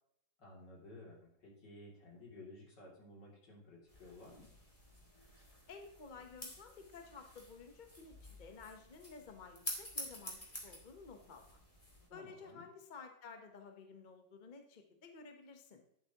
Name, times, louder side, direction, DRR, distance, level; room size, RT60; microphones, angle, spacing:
voice 1, 0.4-4.5 12.1-12.6, left 2 dB, 70° left, -3 dB, 3.4 m, -55 dB
sound 1, 3.9-12.1, left 1 dB, 20° left, 2.3 m, -50 dB
voice 2, 5.7-11.6 12.1-15.8, left 4 dB, 35° left, 5 dB, 0.9 m, -53 dB
10.5 x 8.1 x 2.9 m, 0.75 s
omnidirectional pair, 2.0 m